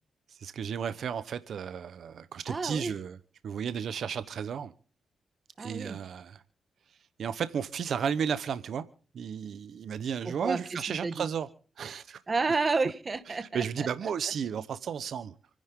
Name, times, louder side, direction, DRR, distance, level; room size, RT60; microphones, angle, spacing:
voice 1, 0.3-3.2 3.4-4.7 5.6-6.4 7.2-8.8 9.1-11.5 11.8-12.2 13.3-15.3, right 7 dB, 65° right, 1.0 m, -33 dB
voice 2, 2.5-2.9 5.6-6.0 10.2-11.2 12.3-13.9, right 4 dB, 30° right, 1.7 m, -31 dB
28.5 x 10.5 x 3.8 m
cardioid pair, 120°, 0 cm